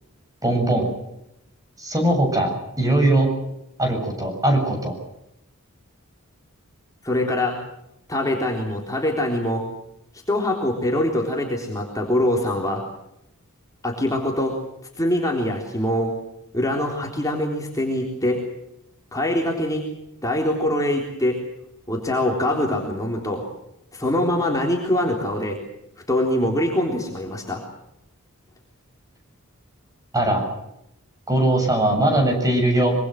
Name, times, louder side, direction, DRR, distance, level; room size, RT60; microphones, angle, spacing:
voice 1, 0.4-0.9 1.8-2.5 2.8-3.3 3.8-4.9 30.1-30.4 31.3-32.9, right 1 dB, 15° right, 3 dB, 7.4 m, -20 dB
voice 2, 7.0-7.6 8.1-9.6 10.3-12.8 13.8-14.6 15.0-16.1 16.5-18.4 19.1-19.8 20.2-21.4 21.9-23.4 23.9-25.6 26.1-27.6, left 1 dB, 15° left, 0 dB, 3.7 m, -23 dB
25.5 x 24.0 x 6.6 m, 0.83 s
head